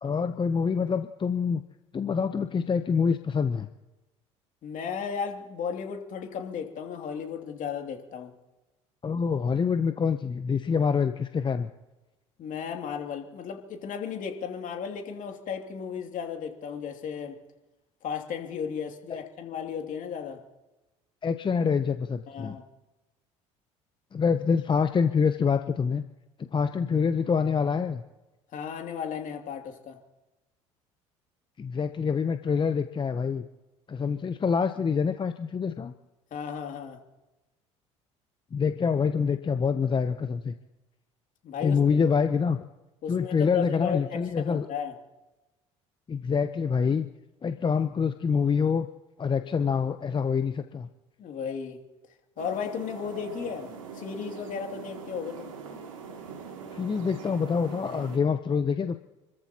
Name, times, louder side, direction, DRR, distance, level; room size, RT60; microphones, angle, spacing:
voice 1, 0.0-1.6 1.9-3.7 9.0-11.7 19.1-19.2 21.2-22.6 24.1-26.0 26.4-28.0 31.6-33.5 33.9-35.9 38.5-40.5 41.6-42.6 43.1-44.7 46.1-47.1 47.4-48.9 49.2-50.9 56.7-59.0, left 6 dB, 30° left, 9 dB, 0.9 m, -26 dB
voice 2, 4.6-8.3 12.4-17.4 18.0-20.4 22.3-22.6 28.5-30.0 36.3-37.0 41.4-41.8 43.0-44.9 51.2-51.8 52.4-55.5, left 7 dB, 55° left, 3 dB, 2.8 m, -35 dB
sound 1, 52.4-58.2, right 5 dB, 85° right, 2.6 m, -42 dB
30.0 x 14.0 x 3.0 m, 1.1 s
hypercardioid pair, 65°, 16 cm